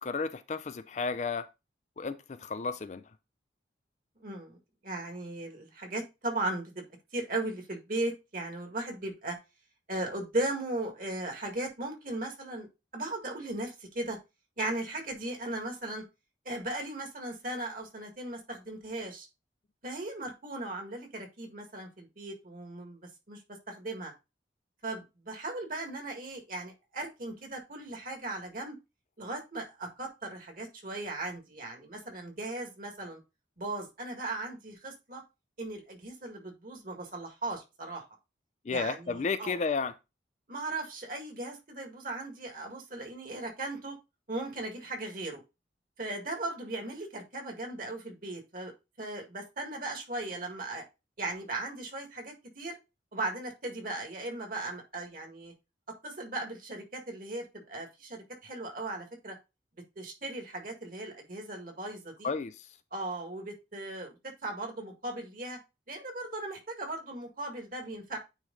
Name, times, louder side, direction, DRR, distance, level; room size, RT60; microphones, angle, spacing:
voice 1, 0.0-1.5 2.0-3.0 38.6-39.9 62.2-62.7, left 4 dB, 40° left, 0.4 m, -32 dB
voice 2, 4.2-4.6 4.8-6.8 7.1-9.4 9.9-12.7 12.9-14.2 14.6-16.0 16.5-19.3 19.8-23.0 23.3-23.4 23.7-24.1 24.8-28.8 29.2-33.2 33.6-35.2 35.6-38.0 38.7-39.6 40.5-44.0 44.3-45.4 46.0-48.7 49.0-50.8 51.2-52.8 53.1-55.5 56.0-59.4 60.0-62.3 62.9-64.2 64.4-65.6 65.9-68.2, right 2 dB, 45° right, 1.8 m, -37 dB
9.2 x 3.2 x 3.7 m
head